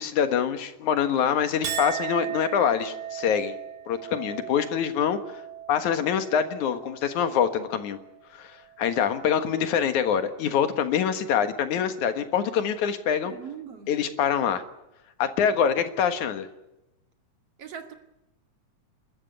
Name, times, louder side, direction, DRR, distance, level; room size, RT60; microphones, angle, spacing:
voice 1, 0.0-3.6 3.9-5.2 5.7-8.0 8.3-8.5 8.8-13.3 13.9-14.6 15.2-16.5, left 8 dB, 90° left, 9 dB, 3.0 m, -25 dB
Chink clink, 1.6-8.2 8.6-9.2, right 9 dB, 75° right, 3.1 m, -38 dB
voice 2, 13.2-14.0 17.6-17.9, right 8 dB, 55° right, 6 dB, 3.0 m, -40 dB
28.0 x 13.5 x 9.7 m, 0.90 s
omnidirectional pair, 3.3 m